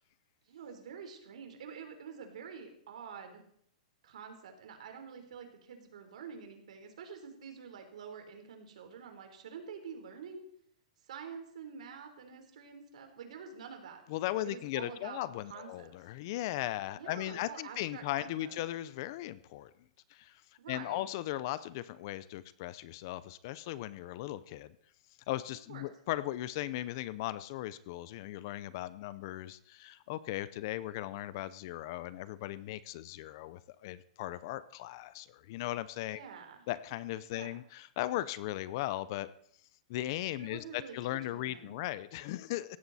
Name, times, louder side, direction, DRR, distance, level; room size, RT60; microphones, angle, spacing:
voice 1, 0.5-3.4 4.0-10.4 11.1-14.0 14.4-15.2 15.5-15.9 17.0-18.6 20.6-21.0 25.7-25.9 36.1-36.6 37.3-37.5 40.4-41.8, right 6 dB, 65° right, 5 dB, 3.8 m, -47 dB
voice 2, 14.1-19.7 20.1-20.4 20.7-24.7 25.3-36.2 36.7-39.3 39.9-42.8, left 15 dB, 35° left, 17 dB, 0.5 m, -37 dB
17.0 x 14.0 x 4.2 m, 0.65 s
supercardioid pair, 175°, 4 cm